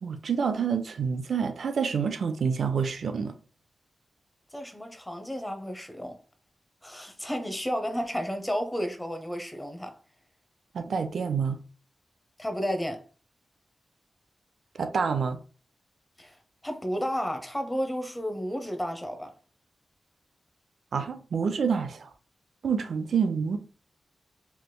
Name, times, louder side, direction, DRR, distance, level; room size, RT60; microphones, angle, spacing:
voice 1, 0.0-3.3 10.7-11.6 14.8-15.4 20.9-22.1 22.6-23.6, right 6 dB, 80° right, 0.3 m, -27 dB
voice 2, 4.5-6.2 6.8-9.9 12.4-13.0 16.2-16.4 16.6-19.3, equal, 10° left, 0.7 m, -32 dB
3.3 x 3.0 x 2.2 m
cardioid pair, 75°, 0 cm